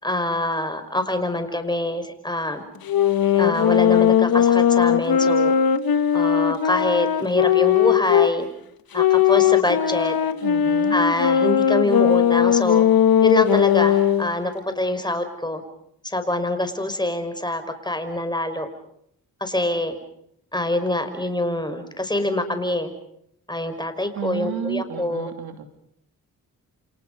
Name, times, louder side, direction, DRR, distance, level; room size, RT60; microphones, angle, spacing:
voice 1, 0.0-2.6 3.3-5.5 6.1-8.5 8.9-10.1 10.9-12.9 13.2-15.6 16.0-18.7 19.4-20.0 20.5-22.9 23.5-25.3, left 1 dB, 10° left, 8 dB, 5.5 m, -25 dB
sound 1, 2.8-8.3 8.9-14.3, left 9 dB, 65° left, 1.6 m, -18 dB
voice 2, 10.4-11.0 24.1-25.6, right 8 dB, 70° right, 7 dB, 3.0 m, -31 dB
29.0 x 27.5 x 5.5 m, 0.73 s
supercardioid pair, 50°, 39 cm